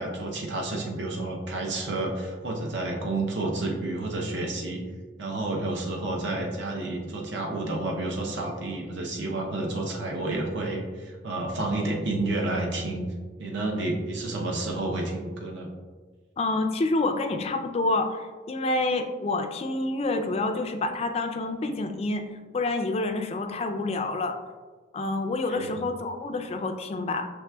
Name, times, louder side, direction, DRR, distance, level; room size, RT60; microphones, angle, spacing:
voice 1, 0.0-4.8 5.2-13.1 13.4-15.7 25.5-25.8, right 2 dB, 65° right, 0 dB, 0.6 m, -30 dB
voice 2, 16.4-22.2 22.5-24.4 24.9-27.3, left 2 dB, 30° left, 5 dB, 0.3 m, -28 dB
6.0 x 3.3 x 2.2 m, 1.5 s
head